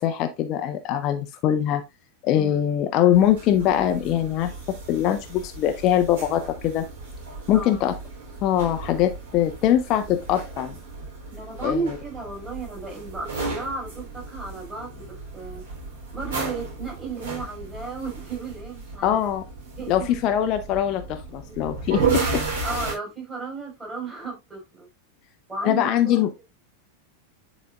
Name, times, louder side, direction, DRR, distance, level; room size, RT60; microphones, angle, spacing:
voice 1, 0.0-1.8 2.2-6.9 7.5-8.0 8.4-10.8 11.6-12.0 19.0-19.4 19.9-22.4 25.6-26.3, left 11 dB, 35° left, 0.7 m, -22 dB
sound 1, 3.1-22.9, right 4 dB, 60° right, 3.6 m, -34 dB
voice 2, 11.3-15.6 16.1-19.2 19.8-20.1 21.5-21.6 22.6-24.9 25.5-26.1, right 3 dB, 15° right, 4.5 m, -34 dB
10.5 x 4.1 x 2.5 m
figure-of-eight pair, 90°, 0 cm